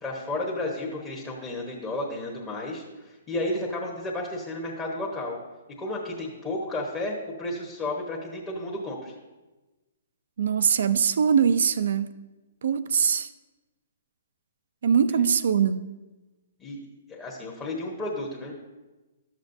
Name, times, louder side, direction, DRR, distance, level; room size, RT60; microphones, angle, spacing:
voice 1, 0.0-5.4 5.8-9.1 16.6-16.8 17.1-18.5, left 1 dB, 15° left, 1.3 m, -32 dB
voice 2, 10.4-12.1 12.6-13.3 14.8-15.9, right 7 dB, 70° right, 0.5 m, -22 dB
12.5 x 7.3 x 2.7 m
hypercardioid pair, 150°, 0 cm